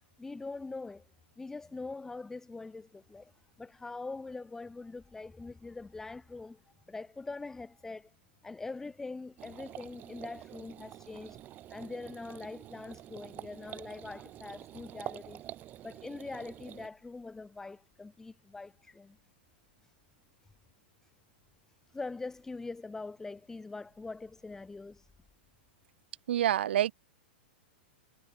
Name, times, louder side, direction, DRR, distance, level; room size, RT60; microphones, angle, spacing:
voice 1, 0.2-1.1 1.4-3.3 3.6-6.6 6.9-8.1 8.4-11.4 11.7-15.4 15.8-19.2 19.8-19.9 21.9-25.1, left 3 dB, 10° left, 0.5 m, -43 dB
sound 1, 9.4-16.9, right 13 dB, 30° right, 0.7 m, -47 dB
voice 2, 26.3-26.9, right 11 dB, 75° right, 0.3 m, -27 dB
hypercardioid pair, 125°, 6 cm